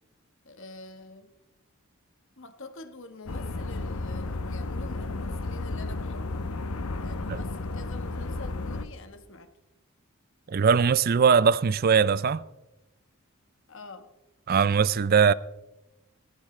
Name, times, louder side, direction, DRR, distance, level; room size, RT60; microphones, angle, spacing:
voice 1, 0.4-1.3 2.4-6.6 7.0-9.5 13.7-14.1, left 3 dB, 60° left, 1.4 m, -46 dB
sound 1, 3.3-8.8, left 2 dB, 90° left, 0.9 m, -33 dB
voice 2, 10.5-12.4 14.5-15.3, right 6 dB, 45° right, 0.4 m, -21 dB
20.0 x 14.5 x 3.2 m
head